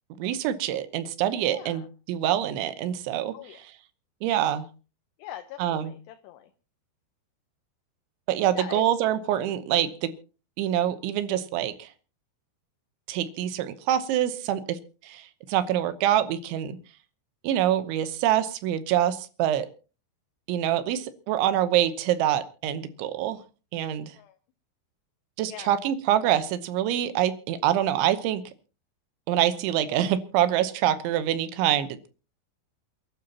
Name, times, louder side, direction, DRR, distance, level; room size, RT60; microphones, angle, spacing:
voice 1, 0.2-3.3 4.2-4.7 5.6-5.9 8.3-10.1 10.6-11.9 13.1-14.8 15.0-16.8 17.4-19.7 20.5-23.4 23.7-24.1 25.4-28.4 29.3-32.1, right 11 dB, 85° right, 12 dB, 3.4 m, -25 dB
voice 2, 1.5-1.9 3.3-3.6 5.2-6.5 8.5-8.8 24.1-24.4 25.5-25.7, left 12 dB, 75° left, 7 dB, 2.8 m, -41 dB
28.5 x 12.0 x 2.9 m, 0.35 s
omnidirectional pair, 5.3 m